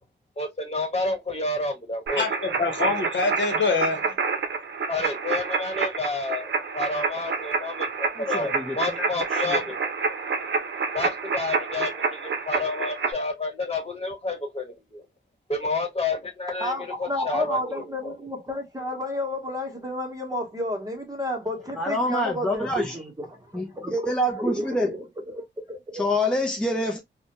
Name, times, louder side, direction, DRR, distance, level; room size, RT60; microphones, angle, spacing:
voice 1, 0.4-2.2 2.6-2.7 4.9-9.8 10.9-15.0 15.5-18.2, left 2 dB, 30° left, 1.3 m, -30 dB
sound 1, 2.1-13.1, right 5 dB, 70° right, 0.6 m, -28 dB
voice 2, 2.2-4.2, left 4 dB, 75° left, 0.9 m, -25 dB
voice 3, 8.1-9.6 21.7-23.0 23.5-24.9 25.9-27.0, left 1 dB, 5° left, 0.5 m, -27 dB
voice 4, 16.6-26.1, left 1 dB, 20° right, 1.0 m, -31 dB
2.2 x 2.2 x 2.8 m
cardioid pair, 70°, 19 cm